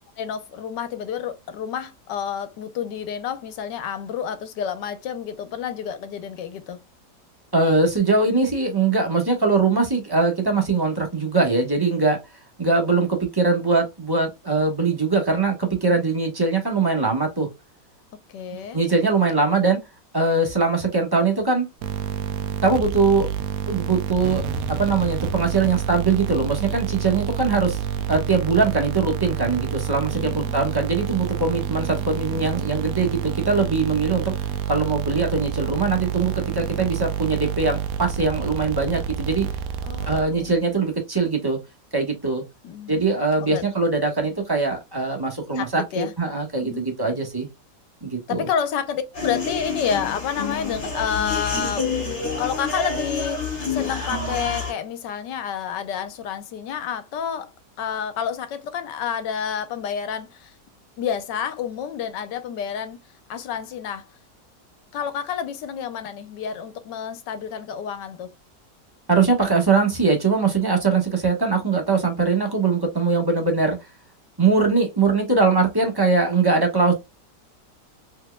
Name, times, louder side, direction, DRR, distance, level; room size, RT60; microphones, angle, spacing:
voice 1, 0.2-6.8 18.3-18.8 30.1-30.6 39.8-40.5 42.6-43.1 43.4-43.6 45.6-46.1 46.6-46.8 48.3-51.9 52.4-57.5 57.8-60.5 61.0-63.0 63.3-64.1 64.9-68.3, left 8 dB, 85° left, 1.4 m, -29 dB
voice 2, 7.5-12.2 12.6-17.5 18.7-19.8 20.1-21.7 22.6-23.3 23.7-27.8 28.1-34.3 34.7-39.5 40.1-41.6 41.9-42.4 42.9-47.5 48.0-48.4 69.1-73.8 74.4-76.9, right 4 dB, 15° right, 1.1 m, -21 dB
sound 1, 21.8-40.6, right 8 dB, 70° right, 0.9 m, -28 dB
sound 2, 49.1-54.7, left 4 dB, 40° left, 2.3 m, -28 dB
4.5 x 3.3 x 2.2 m
omnidirectional pair, 1.8 m